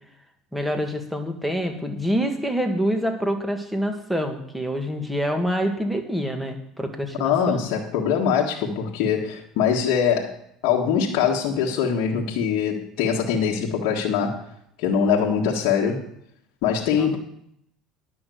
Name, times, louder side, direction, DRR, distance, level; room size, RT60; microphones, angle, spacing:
voice 1, 0.5-7.6 17.0-17.2, equal, ahead, 4 dB, 1.9 m, -26 dB
voice 2, 7.2-10.4 10.6-14.5 14.8-16.1 16.6-17.2, left 7 dB, 70° left, -3 dB, 1.7 m, -23 dB
10.5 x 6.3 x 7.8 m, 0.73 s
supercardioid pair, 95°, 0 cm